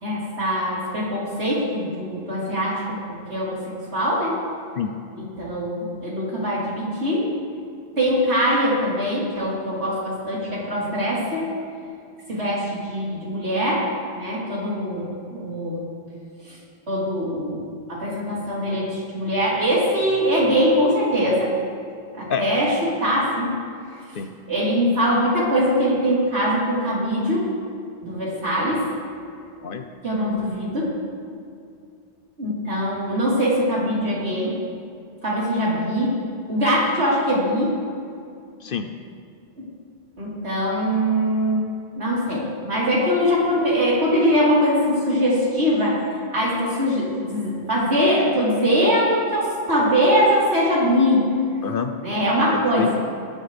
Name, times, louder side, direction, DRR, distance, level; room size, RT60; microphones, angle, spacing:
voice 1, 0.0-4.4 5.4-7.3 8.0-11.6 12.3-13.9 14.1-15.8 16.4-16.6 16.9-21.5 22.1-23.5 24.5-27.5 28.0-28.9 30.0-31.0 32.4-34.5 35.2-36.1 36.5-37.8 39.6-39.7 40.2-41.6 41.9-46.0 46.3-51.3 52.0-52.9, equal, 65° right, -7 dB, 4.2 m, -22 dB
voice 2, 52.5-53.0, left 7 dB, 55° left, 7 dB, 0.7 m, -27 dB
18.5 x 12.0 x 3.4 m, 2.4 s
omnidirectional pair, 1.2 m